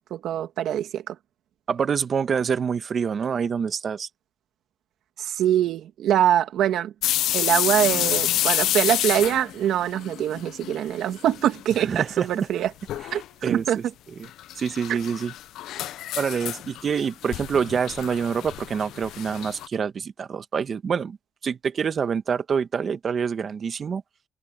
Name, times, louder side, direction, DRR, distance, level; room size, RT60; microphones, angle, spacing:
voice 1, 0.1-1.2 5.2-6.9 7.3-12.7 13.1-13.8 14.9-15.0, right 11 dB, 80° right, 2.0 m, -24 dB
voice 2, 1.7-4.1 11.8-12.5 13.1-13.8 14.2-14.3 14.6-15.3 16.2-21.2 21.4-24.0, right 6 dB, 50° right, 1.5 m, -26 dB
sound 1, 7.0-10.8 11.1-11.8 12.1-12.2 12.9-13.2 14.2-19.7, left 13 dB, 85° left, 0.6 m, -28 dB
cardioid pair, 90°, 0 cm